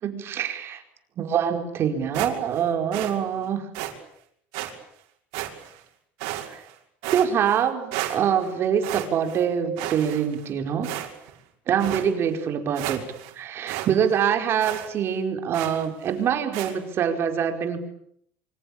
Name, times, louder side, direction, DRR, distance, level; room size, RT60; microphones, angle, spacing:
voice 1, 0.0-0.8 1.2-3.7 6.5-6.6 7.1-10.9 11.7-13.0 13.3-17.8, right 8 dB, 45° right, 6 dB, 5.0 m, -24 dB
sound 1, 2.1-2.6 2.9-3.1 3.7-3.9 4.5-4.7 5.3-5.8 6.2-6.7 7.0-7.6 7.9-8.5 8.8-9.4 9.8-10.5 10.8-11.3 11.8-12.1 12.5-12.6 12.7-13.3 13.7-13.9 14.2-14.3 14.6-14.9 15.5-15.8 16.5-16.7, right 15 dB, 80° right, 6.0 m, -32 dB
27.0 x 25.5 x 8.8 m, 0.70 s
cardioid pair, 130°, 6 cm